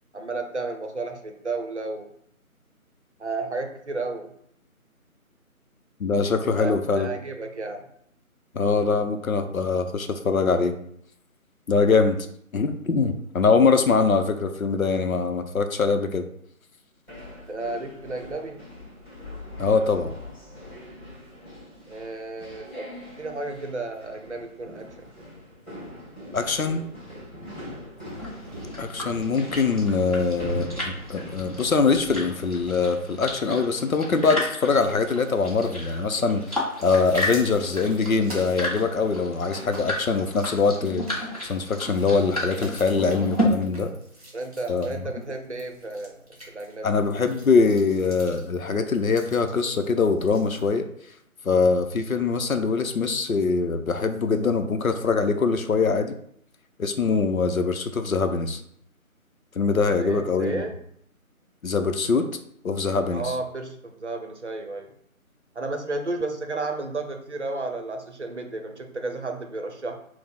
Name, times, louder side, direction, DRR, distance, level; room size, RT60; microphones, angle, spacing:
voice 1, 0.1-2.1 3.2-4.3 6.6-7.9 17.5-18.6 21.9-22.9 23.2-25.1 44.3-46.9 60.0-60.8 63.1-64.9 65.6-70.0, right 3 dB, 55° right, 4 dB, 0.6 m, -32 dB
voice 2, 6.0-7.1 8.5-10.7 11.7-12.2 12.5-16.2 19.6-20.1 26.3-26.8 28.8-43.9 44.7-45.0 46.8-50.9 51.4-56.2 56.8-58.6 59.6-60.6 61.6-62.3 62.6-63.4, left 4 dB, 75° left, 7 dB, 0.6 m, -23 dB
sound 1, 17.1-33.5, left 1 dB, 10° left, 1.3 m, -41 dB
sound 2, 28.2-43.4, equal, 25° left, 0.8 m, -34 dB
sound 3, 34.7-50.7, equal, 25° right, 0.9 m, -47 dB
4.4 x 2.0 x 4.3 m, 0.68 s
figure-of-eight pair, 160°, 43 cm